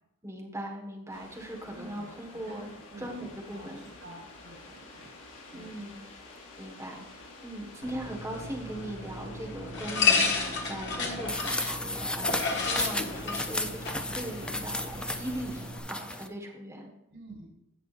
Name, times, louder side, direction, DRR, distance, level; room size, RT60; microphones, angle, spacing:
voice 1, 0.2-2.7 3.0-3.9 5.5-6.1 6.6-16.9, right 1 dB, 15° right, -1 dB, 1.4 m, -40 dB
sound 1, 1.1-15.4, left 2 dB, 80° left, 3.6 m, -50 dB
voice 2, 1.7-2.1 2.5-3.2 3.5-5.1 5.5-5.8 17.1-17.5, right 1 dB, 90° right, -7 dB, 3.8 m, -49 dB
sound 2, 7.8-15.8, left 4 dB, 55° left, 1.5 m, -32 dB
sound 3, 11.3-16.3, left 1 dB, 5° left, 0.3 m, -34 dB
16.0 x 6.1 x 2.5 m, 0.85 s
head